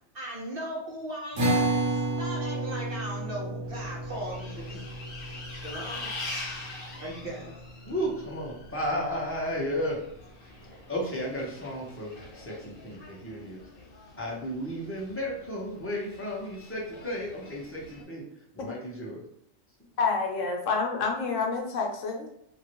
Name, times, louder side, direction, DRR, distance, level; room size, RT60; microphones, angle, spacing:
voice 1, 0.1-4.9 5.5-6.2 6.9-7.5, right 1 dB, 50° right, -3 dB, 0.9 m, -38 dB
sound 1, 1.4-8.0, right 1 dB, 70° right, 1.4 m, -32 dB
Bus, 3.6-18.0, left 2 dB, 45° left, 1.0 m, -44 dB
voice 2, 7.9-10.1 10.9-13.7 14.2-19.2, equal, 15° left, -4 dB, 0.6 m, -33 dB
voice 3, 20.0-22.3, left 4 dB, 75° left, 1 dB, 1.0 m, -28 dB
3.0 x 2.6 x 2.9 m, 0.77 s
omnidirectional pair, 1.3 m